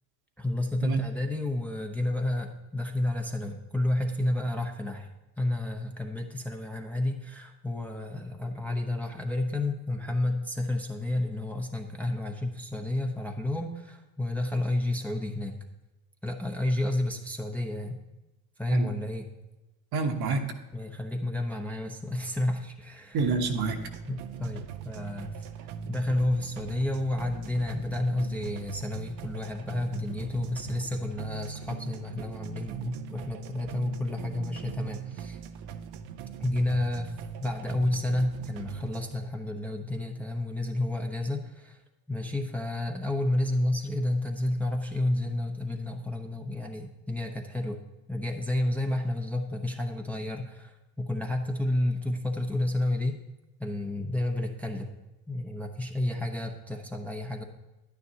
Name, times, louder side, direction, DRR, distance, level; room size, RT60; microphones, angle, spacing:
voice 1, 0.4-5.1 5.4-15.5 16.2-18.0 18.6-19.3 20.7-23.2 24.1-25.5 25.8-35.4 36.4-37.1 37.4-41.8 42.1-47.8 48.1-53.2 53.6-54.9 55.3-57.4, left 1 dB, 5° left, 2 dB, 0.8 m, -30 dB
voice 2, 19.9-20.5 23.1-23.8, right 4 dB, 50° right, 5 dB, 1.3 m, -27 dB
sound 1, 23.2-39.2, right 8 dB, 70° right, 0.8 m, -41 dB
10.5 x 9.6 x 2.8 m, 1.0 s
supercardioid pair, 85°, 49 cm